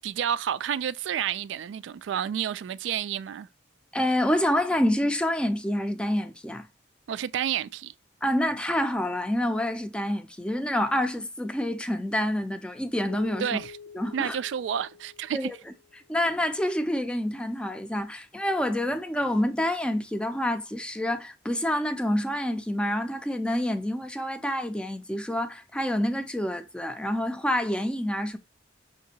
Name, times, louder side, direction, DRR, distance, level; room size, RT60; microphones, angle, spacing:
voice 1, 0.0-3.5 7.1-7.9 13.4-13.7 14.1-15.5, right 9 dB, 75° right, 0.3 m, -30 dB
voice 2, 3.9-6.7 8.2-13.6 13.9-14.4 15.3-15.6 16.1-28.4, left 1 dB, 5° left, 0.4 m, -27 dB
Keyboard (musical), 13.1-16.1, left 6 dB, 75° left, 0.6 m, -47 dB
5.8 x 2.7 x 2.7 m
head